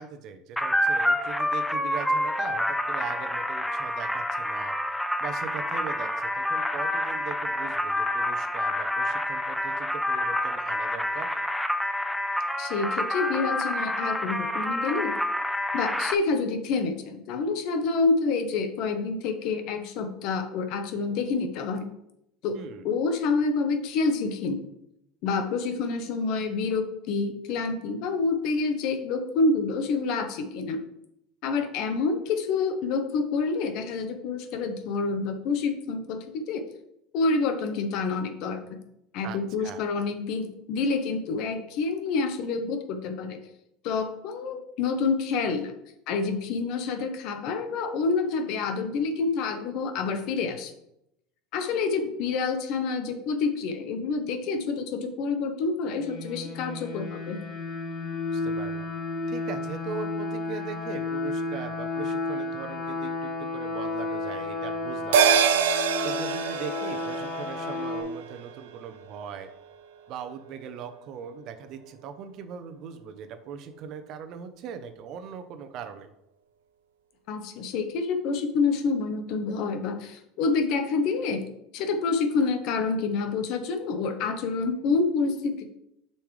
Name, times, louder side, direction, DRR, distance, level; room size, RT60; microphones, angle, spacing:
voice 1, 0.0-4.7 5.2-11.4 22.6-22.9 39.2-39.8 58.3-58.9 59.3-65.5 66.0-69.5 70.1-76.1, right 7 dB, 55° right, 8 dB, 0.8 m, -40 dB
sound 1, 0.6-16.1, left 1 dB, ahead, 0.4 m, -28 dB
voice 2, 12.6-15.1 15.7-21.9 22.4-22.6 22.8-24.6 25.2-30.8 31.4-36.6 37.1-38.8 39.1-43.4 43.8-45.7 46.1-50.7 51.5-57.4 77.3-81.4 81.7-85.7, left 4 dB, 60° left, 7 dB, 1.0 m, -28 dB
sound 2, 56.0-68.0, left 3 dB, 45° left, 2.2 m, -32 dB
sound 3, 65.1-69.8 70.2-70.3, right 7 dB, 90° right, 0.6 m, -26 dB
7.0 x 5.5 x 3.3 m, 0.80 s
supercardioid pair, 105°, 0 cm